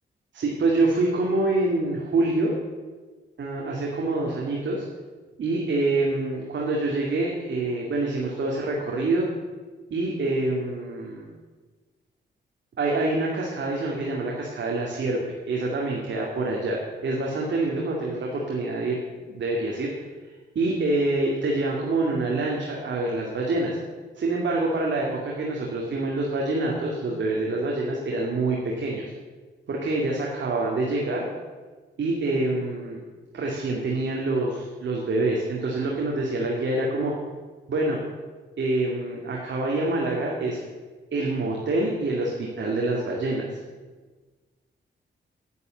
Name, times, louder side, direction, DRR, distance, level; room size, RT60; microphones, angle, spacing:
voice 1, 0.3-2.5 3.4-4.8 5.4-9.3 9.9-11.3 12.8-15.2 15.5-19.0 19.3-19.9 20.5-23.8 24.2-29.0 29.7-31.3 32.0-33.0 33.3-37.1 37.7-38.0 38.6-40.6 41.1-43.6, right 2 dB, 65° right, -2 dB, 2.4 m, -26 dB
10.0 x 9.5 x 7.7 m, 1.4 s
cardioid pair, 65°, 20 cm